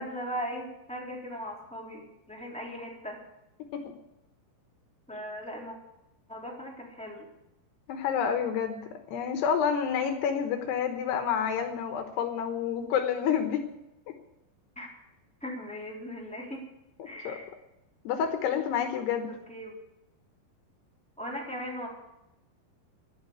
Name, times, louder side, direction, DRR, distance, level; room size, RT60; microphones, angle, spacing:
voice 1, 0.0-3.2 5.1-5.7 6.3-7.3 14.7-14.9 15.4-16.6 17.0-17.5 19.2-19.8 21.2-21.9, equal, ahead, -3 dB, 3.0 m, -38 dB
voice 2, 7.9-8.8 9.1-13.6 17.2-17.3 18.0-19.3, left 7 dB, 75° left, 5 dB, 3.1 m, -28 dB
12.5 x 11.5 x 8.1 m, 0.89 s
omnidirectional pair, 4.9 m